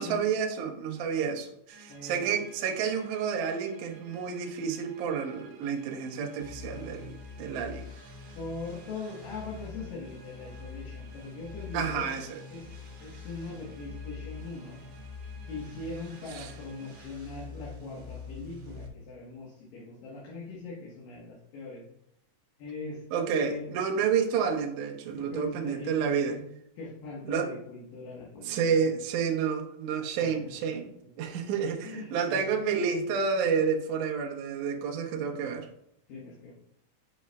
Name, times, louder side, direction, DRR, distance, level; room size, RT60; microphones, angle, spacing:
voice 1, 0.0-7.9 11.7-12.4 16.3-16.5 23.1-26.4 27.3-27.5 28.4-30.9 31.2-35.7, right 6 dB, 70° right, 2 dB, 2.0 m, -30 dB
sound 1, 1.7-17.0, right 3 dB, 30° right, 1.5 m, -55 dB
voice 2, 1.9-2.2 8.4-12.1 12.5-14.8 15.5-21.8 22.6-23.0 23.3-23.7 25.1-26.0 26.2-26.4 26.8-28.9 30.2-30.8 31.8-32.5 36.1-36.5, left 3 dB, 75° left, -4 dB, 2.9 m, -41 dB
sound 2, 6.4-18.9, left 4 dB, 55° right, 2.1 m, -45 dB
9.4 x 5.6 x 2.2 m, 0.75 s
omnidirectional pair, 4.1 m